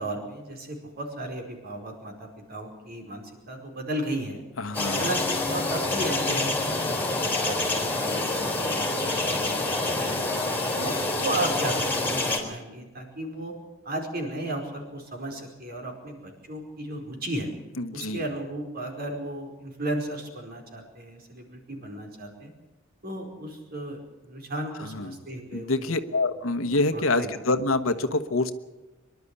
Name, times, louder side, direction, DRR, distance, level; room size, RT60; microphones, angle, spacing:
voice 1, 0.0-4.4 5.0-10.2 10.7-13.5 13.8-17.5 17.9-22.5 23.0-26.0 26.9-27.3, right 1 dB, 50° right, 2 dB, 4.8 m, -35 dB
voice 2, 4.6-5.1 17.8-18.2 24.8-25.2 25.5-28.5, left 2 dB, 80° left, 10 dB, 1.2 m, -26 dB
sound 1, 4.7-12.4, left 2 dB, 10° left, 4.1 m, -27 dB
24.5 x 12.0 x 9.8 m, 1.1 s
head